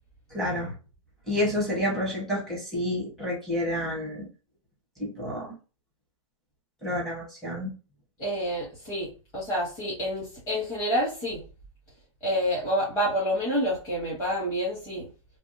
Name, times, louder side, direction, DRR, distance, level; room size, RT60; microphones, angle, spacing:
voice 1, 0.3-0.7 1.3-4.3 5.0-5.5 6.8-7.7, left 1 dB, ahead, -5 dB, 0.9 m, -29 dB
voice 2, 8.2-11.4 12.2-15.1, equal, 20° left, -7 dB, 1.3 m, -28 dB
2.7 x 2.6 x 2.7 m, 0.33 s
hypercardioid pair, 165°, 17 cm